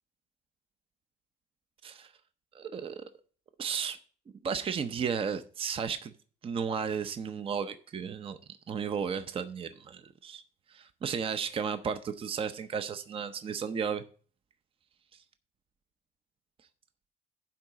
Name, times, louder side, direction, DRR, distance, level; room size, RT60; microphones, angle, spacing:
voice 1, 2.5-3.0 3.6-4.0 4.4-6.1 6.4-8.4 8.7-10.4 10.7-14.0, right 6 dB, 35° right, 10 dB, 0.6 m, -34 dB
10.0 x 3.9 x 7.4 m, 0.42 s
cardioid pair, 110°, 17 cm